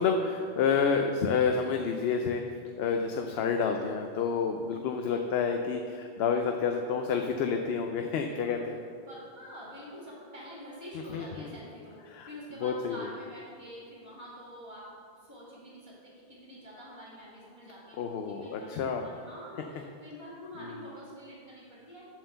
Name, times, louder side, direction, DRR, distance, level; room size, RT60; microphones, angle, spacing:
voice 1, 0.0-2.4 2.8-8.8 11.1-11.5 12.1-12.3 12.6-13.1 18.0-19.1, left 5 dB, 75° left, 4 dB, 0.8 m, -29 dB
voice 2, 8.2-8.8 9.1-22.0, equal, 15° right, -7 dB, 2.2 m, -47 dB
7.4 x 4.5 x 6.7 m, 2.4 s
omnidirectional pair, 1.1 m